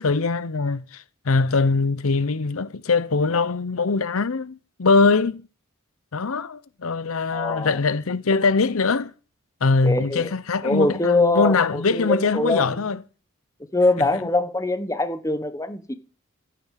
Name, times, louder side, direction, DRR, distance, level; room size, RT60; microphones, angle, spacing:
voice 1, 0.0-5.4 6.1-9.1 9.6-13.0 14.0-14.1, left 4 dB, 75° left, 0.7 m, -22 dB
voice 2, 7.3-7.8 9.8-10.3 10.6-12.8 13.7-15.9, left 2 dB, 15° left, 1.1 m, -23 dB
13.0 x 9.6 x 7.4 m
head